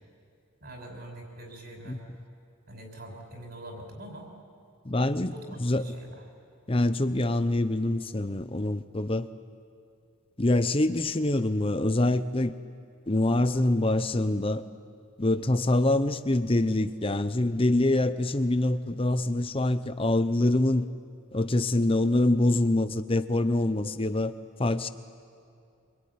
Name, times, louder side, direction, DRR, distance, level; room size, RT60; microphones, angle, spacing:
voice 1, 0.6-2.0 2.7-4.3 5.3-6.2, right 1 dB, 45° right, 2 dB, 6.0 m, -44 dB
voice 2, 4.8-5.9 6.7-9.3 10.4-12.5 13.1-14.6 15.2-20.9 21.3-24.3 24.6-24.9, left 1 dB, 25° left, 11 dB, 0.8 m, -25 dB
26.5 x 22.0 x 9.6 m, 2.4 s
head